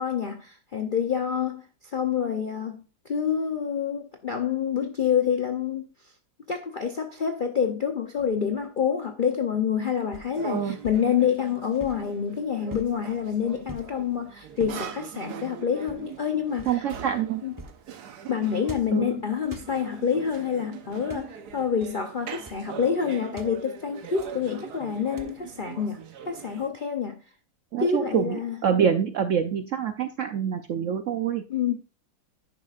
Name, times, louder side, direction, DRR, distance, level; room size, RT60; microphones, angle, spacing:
voice 1, 0.0-1.7 1.9-5.9 6.5-16.8 17.4-17.5 18.3-27.2 27.8-28.6 31.5-31.7, left 7 dB, 40° left, 0.8 m, -27 dB
sound 1, 8.2-8.6 10.1-10.4 10.8-11.1 11.7-12.1 12.7-13.0 13.7-14.0 14.6-14.9 15.8-16.2 16.6-16.9 17.5-17.8 18.6-19.1 19.4-19.7 20.9-21.3 21.8-22.0 22.3-22.7 23.4-23.6 24.2-24.5 25.2-25.5, right 2 dB, 20° right, 0.6 m, -44 dB
sound 2, 10.3-26.7, right 8 dB, 80° right, 1.5 m, -42 dB
voice 2, 10.4-10.8 16.7-17.4 18.9-19.1 27.7-31.4, right 8 dB, 60° right, 0.9 m, -26 dB
11.0 x 9.3 x 2.5 m
omnidirectional pair, 1.7 m